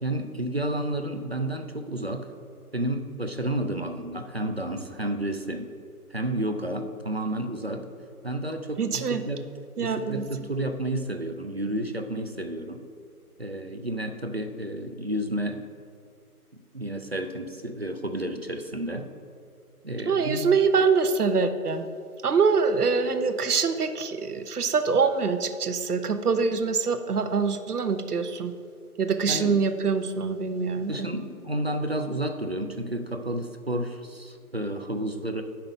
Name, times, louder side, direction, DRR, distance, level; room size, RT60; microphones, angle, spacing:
voice 1, 0.0-2.3 2.7-5.7 6.1-7.9 8.2-9.5 9.8-12.8 13.4-15.6 16.7-19.1 19.8-20.5 29.3-29.6 30.9-35.4, right 1 dB, 45° right, 6 dB, 0.5 m, -31 dB
voice 2, 8.8-9.2 9.8-10.2 20.1-21.9 22.2-28.5 29.0-31.1, right 5 dB, 75° right, 9 dB, 0.9 m, -24 dB
8.8 x 5.8 x 5.2 m, 2.3 s
figure-of-eight pair, 175°, 46 cm